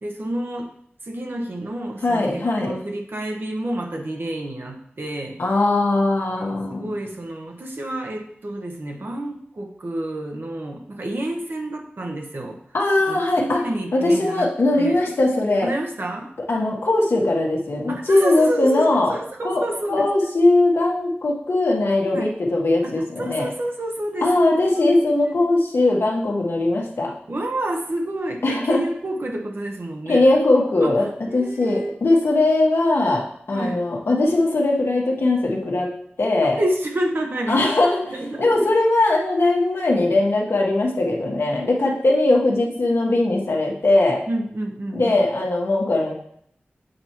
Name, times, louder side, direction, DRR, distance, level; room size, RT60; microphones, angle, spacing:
voice 1, 0.0-0.7 1.0-5.4 6.3-12.6 13.1-15.0 15.6-16.3 17.9-20.1 22.1-22.3 22.8-25.4 27.3-30.3 30.8-31.9 33.5-33.8 36.6-37.7 38.1-38.7 44.3-45.2, right 1 dB, 65° right, 2 dB, 0.9 m, -29 dB
voice 2, 2.0-2.8 5.4-6.9 12.7-13.6 13.9-15.7 16.5-19.2 19.4-19.6 19.9-23.5 24.2-27.1 28.4-28.8 30.1-35.9 36.2-36.6 37.5-44.2 44.9-46.1, left 2 dB, 80° left, -1 dB, 1.2 m, -20 dB
7.7 x 4.4 x 3.0 m, 0.68 s
wide cardioid pair, 50°, 4 cm